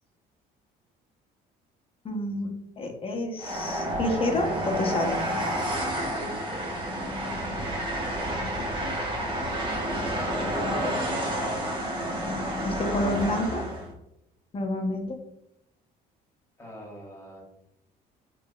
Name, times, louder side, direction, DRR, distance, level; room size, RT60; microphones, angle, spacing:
voice 1, 2.0-5.2 11.8-12.2 12.6-13.7 14.5-15.2, left 1 dB, 35° left, 3 dB, 0.7 m, -29 dB
Train, 3.4-13.9, equal, 30° right, 1.0 m, -30 dB
voice 2, 6.0-6.7 16.6-17.4, equal, 15° left, -2 dB, 1.5 m, -42 dB
3.4 x 3.4 x 2.2 m, 0.83 s
cardioid pair, 110°, 17 cm